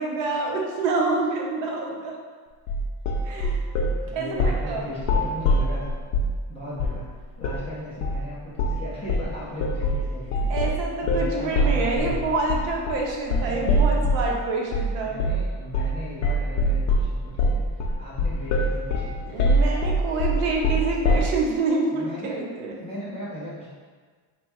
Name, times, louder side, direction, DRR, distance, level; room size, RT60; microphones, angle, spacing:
voice 1, 0.0-2.1 3.2-3.6 4.1-4.8 10.5-15.2 19.3-22.8, right 3 dB, 65° right, -1 dB, 0.8 m, -27 dB
sound 1, 2.7-4.0 4.4-4.7 5.0-6.4 6.8-7.0 7.4-7.6 8.0-8.2 8.6-8.8 9.1-14.3 14.7-14.9 15.2-15.5 15.7-16.0 16.2-21.4, equal, 70° left, 0.6 m, -23 dB
voice 2, 4.0-5.9 6.5-7.1 7.4-10.6 11.0-12.3 13.4-14.3 15.0-19.6 21.9-23.7, left 1 dB, 15° left, -11 dB, 0.3 m, -37 dB
3.3 x 2.2 x 4.1 m, 1.5 s
cardioid pair, 175°, 48 cm